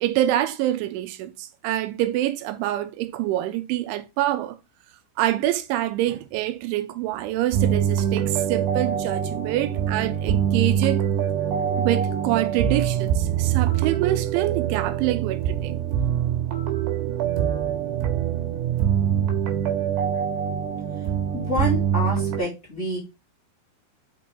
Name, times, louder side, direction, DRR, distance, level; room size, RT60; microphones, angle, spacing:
voice 1, 0.0-4.6 5.2-11.0 11.8-15.8, right 14 dB, 85° right, 3.1 m, -26 dB
sound 1, 7.5-22.4, right 9 dB, 65° right, 3.4 m, -24 dB
voice 2, 21.3-23.0, equal, 25° left, 1.8 m, -27 dB
6.1 x 5.8 x 4.5 m
omnidirectional pair, 5.5 m